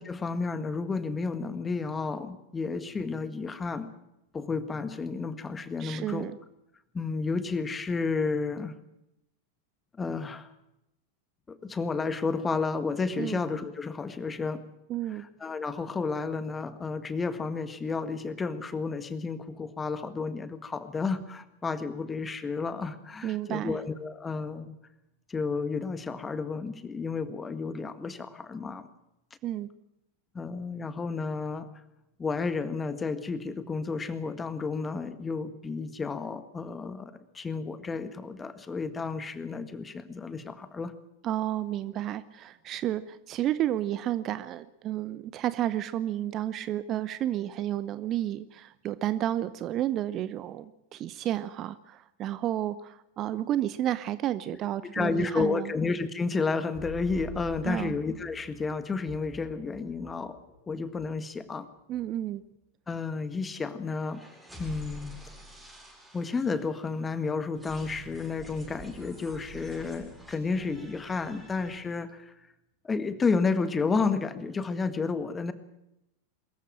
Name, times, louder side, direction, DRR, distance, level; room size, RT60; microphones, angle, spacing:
voice 1, 0.0-3.9 4.3-6.3 6.9-8.7 10.0-10.5 11.5-14.6 15.4-24.8 25.3-28.9 30.3-31.7 32.2-40.9 54.9-60.4 60.7-61.7 62.9-64.2 64.6-65.1 66.1-72.3 72.8-75.5, left 4 dB, 15° left, 12 dB, 1.7 m, -31 dB
voice 2, 5.8-6.4 13.2-13.4 14.9-15.2 23.2-23.8 29.4-29.7 41.2-55.7 57.6-57.9 61.9-62.4, right 12 dB, 35° right, 16 dB, 0.8 m, -31 dB
sound 1, 56.7-61.5 61.9-62.0 62.4-62.5 62.9-63.0 63.9-67.1 67.5-71.8, right 2 dB, 5° right, 7.6 m, -47 dB
23.0 x 14.5 x 8.9 m, 0.85 s
figure-of-eight pair, 90°, 0 cm